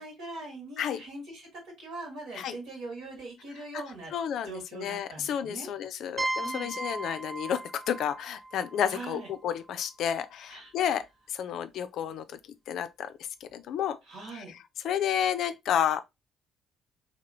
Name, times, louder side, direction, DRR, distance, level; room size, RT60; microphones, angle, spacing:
voice 1, 0.0-4.1 4.4-5.7 6.4-6.7 8.9-9.3 10.5-10.7 14.1-14.5, right 2 dB, 70° right, 1.7 m, -41 dB
voice 2, 4.1-12.4 12.7-13.1 13.4-14.0 14.3-14.4 14.8-16.0, left 9 dB, 65° left, 0.3 m, -31 dB
sound 1, 6.2-9.8, right 1 dB, 35° right, 0.5 m, -37 dB
2.9 x 2.8 x 2.6 m
hypercardioid pair, 45°, 0 cm